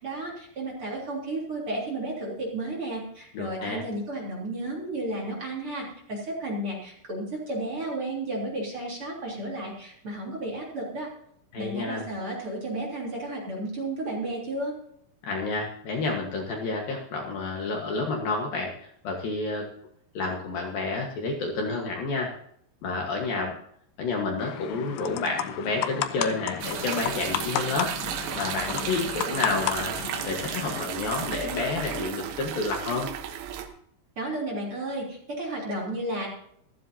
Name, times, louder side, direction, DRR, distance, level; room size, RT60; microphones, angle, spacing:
voice 1, 0.0-11.1 11.6-14.8 34.2-36.3, right 1 dB, 30° right, -1 dB, 3.8 m, -33 dB
voice 2, 3.3-3.8 11.5-12.1 15.2-19.7 20.1-22.3 22.8-23.5 24.0-27.9 28.4-29.9 30.3-33.1, left 3 dB, 60° left, 0 dB, 2.8 m, -30 dB
sound 1, 24.4-30.9, left 11 dB, 80° left, 2.5 m, -33 dB
sound 2, 26.6-33.7, right 9 dB, 85° right, 3.6 m, -34 dB
15.0 x 14.5 x 2.8 m, 0.68 s
omnidirectional pair, 5.3 m